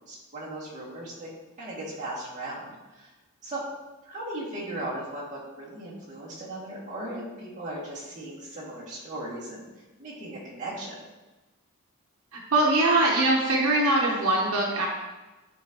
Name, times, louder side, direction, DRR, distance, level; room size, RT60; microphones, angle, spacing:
voice 1, 0.1-1.3 1.6-2.7 2.9-3.1 3.4-3.6 4.0-9.7 10.0-11.0, right 1 dB, 35° right, -7 dB, 2.1 m, -37 dB
voice 2, 12.3-14.9, right 2 dB, 85° right, -1 dB, 1.0 m, -22 dB
10.0 x 3.9 x 3.0 m, 1.1 s
head